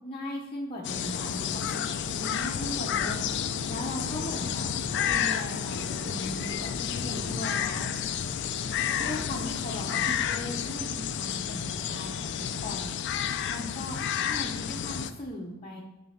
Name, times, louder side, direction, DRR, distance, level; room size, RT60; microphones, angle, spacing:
voice 1, 0.0-4.7 5.0-7.9 8.9-14.0 14.3-15.8, left 1 dB, 25° left, -4 dB, 0.7 m, -38 dB
sound 1, 0.8-15.1, left 8 dB, 55° left, 0.4 m, -31 dB
7.2 x 3.4 x 5.7 m, 1.1 s
head